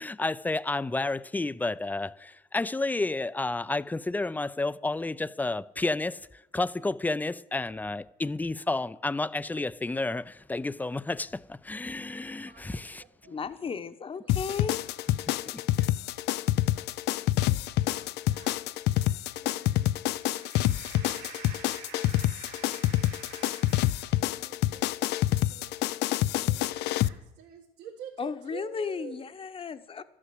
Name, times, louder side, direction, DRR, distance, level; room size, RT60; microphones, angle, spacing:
voice 1, 0.0-13.0 15.5-15.9, left 2 dB, 10° left, 0.4 m, -31 dB
voice 2, 12.5-13.8 14.1-15.1 15.4-29.3, right 8 dB, 75° right, 2.0 m, -50 dB
voice 3, 13.3-14.9 28.2-30.0, left 5 dB, 35° left, 1.0 m, -35 dB
sound 1, 14.3-27.1, left 15 dB, 85° left, 0.5 m, -27 dB
13.5 x 9.8 x 7.7 m
cardioid pair, 110°, 17 cm